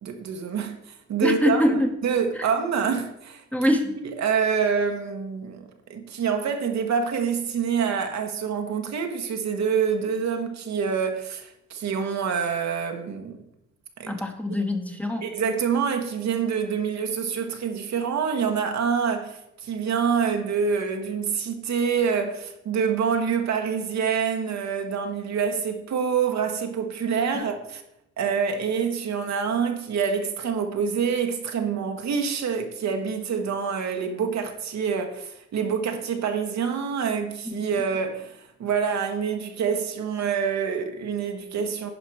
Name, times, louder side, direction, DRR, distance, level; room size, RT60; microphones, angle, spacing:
voice 1, 0.0-3.4 4.0-13.4 14.0-14.1 15.2-27.8 28.2-41.9, right 6 dB, 65° right, 1.3 m, -26 dB
voice 2, 1.2-1.9 2.3-2.5 3.5-3.9 14.1-15.3 27.3-27.5 37.4-37.5, left 1 dB, 5° left, 1.1 m, -24 dB
10.5 x 5.0 x 4.8 m
cardioid pair, 90°, 30 cm